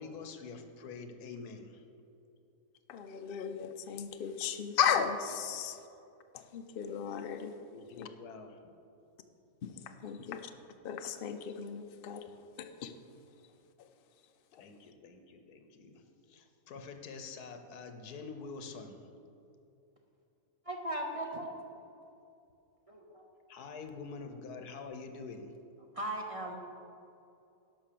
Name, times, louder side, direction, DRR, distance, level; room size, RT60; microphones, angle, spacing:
voice 1, 0.0-1.8 7.7-8.6 14.5-19.1 23.5-25.5, left 4 dB, 90° left, 7 dB, 1.4 m, -46 dB
voice 2, 2.9-5.8 6.3-7.5 8.0-8.1 9.6-10.5 10.8-12.3 12.6-12.9 14.6-14.7, left 7 dB, 55° left, 7 dB, 0.6 m, -35 dB
voice 3, 20.7-21.5 22.9-23.2 25.9-26.6, right 1 dB, 30° right, 0 dB, 0.7 m, -37 dB
11.5 x 6.0 x 6.7 m, 2.7 s
omnidirectional pair, 1.6 m